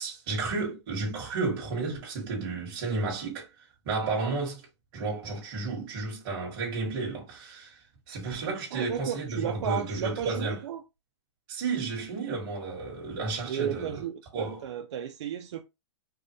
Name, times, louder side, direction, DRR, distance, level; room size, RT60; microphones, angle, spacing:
voice 1, 0.0-3.5 3.8-4.6 4.9-7.8 8.1-10.6 11.5-14.0 14.3-14.6, right 3 dB, 40° right, 2.0 m, -32 dB
voice 2, 8.7-10.8 13.4-15.6, right 9 dB, 70° right, 0.5 m, -34 dB
4.7 x 2.3 x 3.1 m
hypercardioid pair, 150°, 15 cm